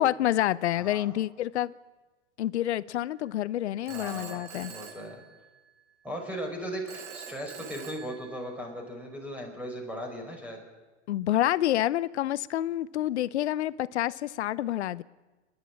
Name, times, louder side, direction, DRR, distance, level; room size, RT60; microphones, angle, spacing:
voice 1, 0.0-1.7 2.4-4.7 11.1-15.0, left 13 dB, 70° left, 19 dB, 0.8 m, -28 dB
voice 2, 0.7-1.1 3.9-4.4 4.7-5.2 6.0-10.6, equal, 5° right, 2 dB, 5.2 m, -37 dB
Telephone, 3.9-5.8 6.9-8.8, right 7 dB, 70° right, 2.5 m, -45 dB
28.5 x 11.5 x 8.7 m, 1.2 s
hypercardioid pair, 120°, 35 cm